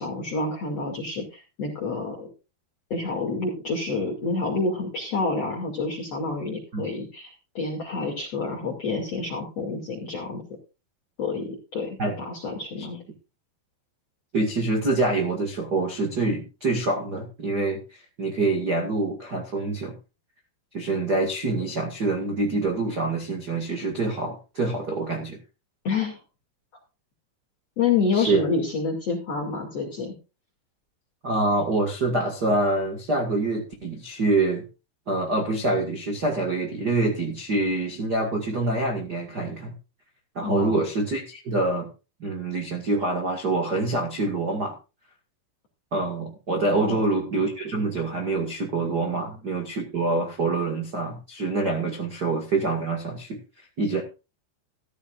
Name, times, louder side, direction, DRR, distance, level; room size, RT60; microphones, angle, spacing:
voice 1, 0.0-2.3 2.9-10.4 11.2-13.0 25.8-26.2 27.8-30.1 40.4-40.8 46.8-47.0, left 4 dB, 40° left, -1 dB, 3.0 m, -28 dB
voice 2, 14.3-19.9 20.7-25.4 28.1-28.4 31.2-34.7 35.1-39.7 40.3-41.9 42.2-44.7 45.9-54.0, right 2 dB, 80° right, 3 dB, 0.9 m, -26 dB
14.0 x 13.5 x 2.5 m, 0.30 s
omnidirectional pair, 5.3 m